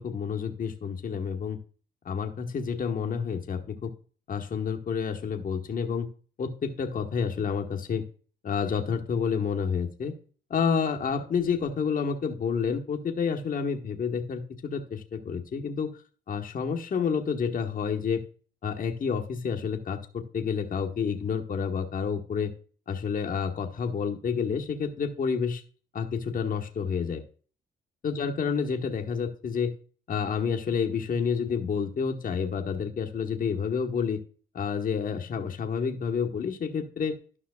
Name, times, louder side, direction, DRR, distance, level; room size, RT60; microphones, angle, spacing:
voice 1, 0.0-1.6 2.0-3.9 4.3-6.1 6.4-8.0 8.4-10.1 10.5-16.0 16.3-18.2 18.6-22.5 22.9-25.6 25.9-27.2 28.0-29.7 30.1-34.2 34.5-37.2, left 6 dB, 45° left, 3 dB, 1.3 m, -29 dB
12.0 x 5.6 x 2.3 m, 0.40 s
cardioid pair, 90°, 20 cm